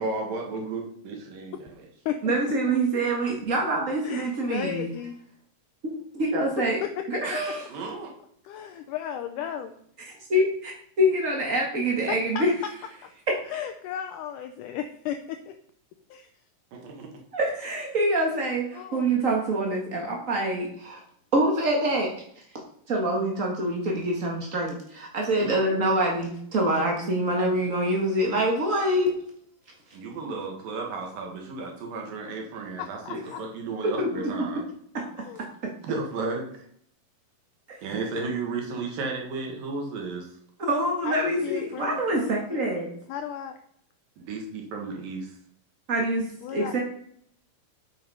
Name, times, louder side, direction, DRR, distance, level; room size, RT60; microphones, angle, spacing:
voice 1, 0.0-1.5 7.7-8.1 16.7-17.1 25.4-25.6 29.9-34.6 35.8-36.6 37.8-40.3 44.2-45.3, right 3 dB, 75° right, 1 dB, 3.5 m, -33 dB
voice 2, 2.2-4.9 5.8-6.8 7.1-7.6 10.1-10.7 11.0-12.5 13.3-13.4 17.3-21.0 21.3-22.4 22.9-29.2 33.8-34.1 34.4-34.5 34.9-35.1 35.6-35.7 37.7-37.8 40.6-42.9 45.9-46.8, right 1 dB, 55° right, 0 dB, 0.8 m, -25 dB
voice 3, 4.0-5.2 6.8-7.6 8.4-9.7 12.1-12.7 13.0-13.1 13.5-15.6 16.1-16.3 18.7-19.1 32.8-33.4 35.2-35.4 41.1-42.7 43.1-43.6 46.4-46.8, left 9 dB, 75° left, 7 dB, 2.0 m, -35 dB
9.1 x 7.5 x 5.3 m, 0.65 s
omnidirectional pair, 4.0 m